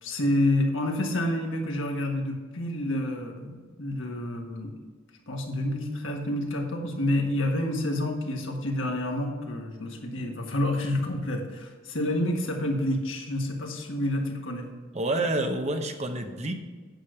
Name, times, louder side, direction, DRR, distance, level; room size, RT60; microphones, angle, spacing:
voice 1, 0.0-4.7 5.3-14.7, left 1 dB, 75° left, 1 dB, 1.6 m, -28 dB
voice 2, 14.9-16.5, right 2 dB, 35° right, 6 dB, 0.8 m, -28 dB
8.8 x 6.5 x 5.8 m, 1.4 s
head